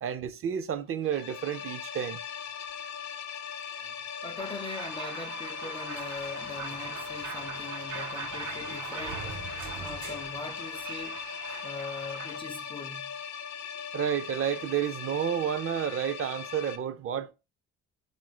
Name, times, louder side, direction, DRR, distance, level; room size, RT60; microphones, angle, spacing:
voice 1, 0.0-2.2 11.5-11.7 13.9-17.3, right 9 dB, 45° right, 0.5 m, -31 dB
sound 1, 1.0-16.8, left 7 dB, 65° left, 0.6 m, -39 dB
voice 2, 4.2-9.3 9.8-11.2 11.6-13.1, left 3 dB, 20° left, 0.3 m, -41 dB
sound 2, 4.4-12.4, right 6 dB, 90° right, 0.8 m, -42 dB
sound 3, 5.9-11.2, right 5 dB, 70° right, 1.1 m, -46 dB
3.6 x 2.6 x 4.7 m
cardioid pair, 90°, 30 cm